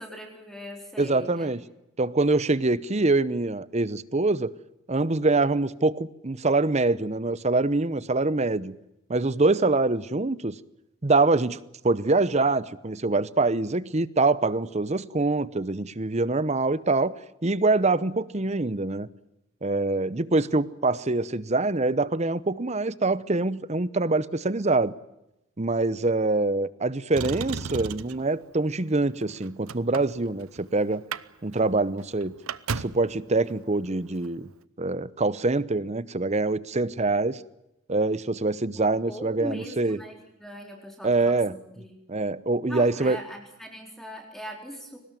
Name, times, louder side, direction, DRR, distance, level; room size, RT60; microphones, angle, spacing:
voice 1, 0.0-1.5 38.8-42.0 42.7-45.0, equal, ahead, 4.0 m, -40 dB
voice 2, 1.0-1.6 2.0-4.5 4.9-8.7 9.1-10.5 11.0-11.6 11.8-17.2 17.4-19.1 19.6-24.9 25.6-31.0 31.4-32.3 32.7-34.5 34.8-37.4 37.9-40.0 41.0-41.6 42.1-43.2, right 3 dB, 30° right, 0.8 m, -24 dB
Motor vehicle (road), 27.1-28.3 29.1-30.6 30.9-31.2 31.5-31.6 32.0-33.1 34.1-34.3, right 5 dB, 75° right, 0.9 m, -34 dB
23.0 x 19.5 x 9.1 m
head